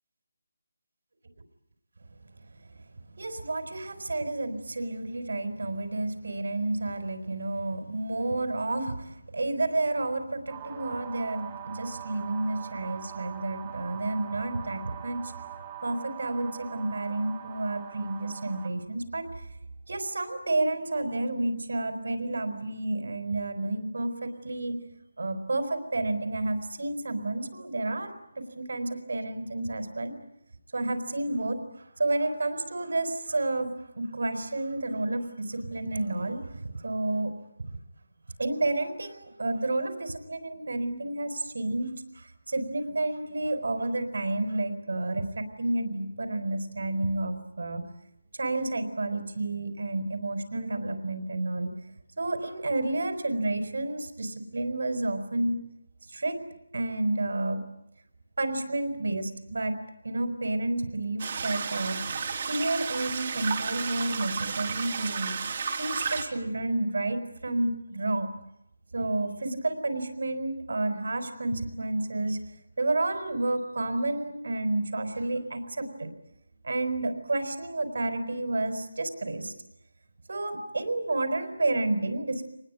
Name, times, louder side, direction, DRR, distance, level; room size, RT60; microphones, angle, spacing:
voice 1, 3.2-15.3 15.8-19.3 19.9-24.8 25.2-30.1 30.7-37.3 38.4-47.8 48.4-51.7 52.2-55.6 56.1-56.4 56.7-57.6 58.4-59.7 60.0-62.0 62.4-65.3 65.8-68.3 68.9-72.4 72.8-76.1 76.6-79.5 80.3-82.4, right 2 dB, 65° right, 8 dB, 4.6 m, -30 dB
sound 1, 10.5-18.7, right 9 dB, 15° right, 3.4 m, -43 dB
sound 2, 61.2-66.2, right 5 dB, 35° right, 3.2 m, -32 dB
25.0 x 20.5 x 9.5 m, 0.83 s
figure-of-eight pair, 175°, 0 cm